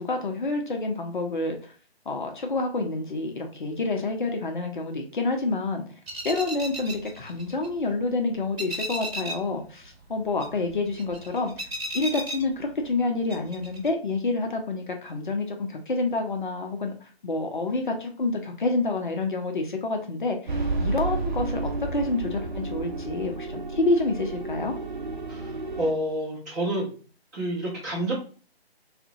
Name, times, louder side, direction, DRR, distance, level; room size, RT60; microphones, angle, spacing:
voice 1, 0.0-1.7 2.1-5.8 6.2-11.5 11.9-16.9 17.2-24.7, left 3 dB, 50° left, 3 dB, 0.5 m, -28 dB
sound 1, 6.1-8.1 8.3-9.6 9.8-13.0 13.3-13.9, right 1 dB, 70° right, 0.9 m, -35 dB
sound 2, 20.5-25.9, right 3 dB, 50° right, 0.7 m, -31 dB
voice 2, 25.8-26.9 27.3-28.1, right 1 dB, 20° right, -6 dB, 0.9 m, -28 dB
3.4 x 2.1 x 2.6 m, 0.39 s
figure-of-eight pair, 145°, 31 cm